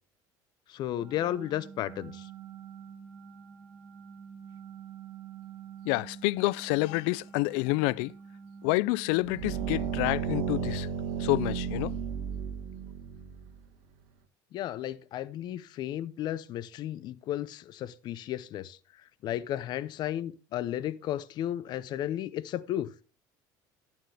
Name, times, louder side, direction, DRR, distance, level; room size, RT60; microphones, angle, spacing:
voice 1, 0.7-2.3 14.5-18.8 19.2-22.9, left 12 dB, 55° left, 0.7 m, -34 dB
sound 1, 1.0-9.9, right 7 dB, 35° right, 7.0 m, -47 dB
voice 2, 5.9-8.1 8.6-10.9 11.2-12.0, left 22 dB, 85° left, 0.4 m, -28 dB
sound 2, 9.2-13.6, right 7 dB, 80° right, 1.5 m, -33 dB
11.5 x 8.9 x 3.4 m
cardioid pair, 125°, 9 cm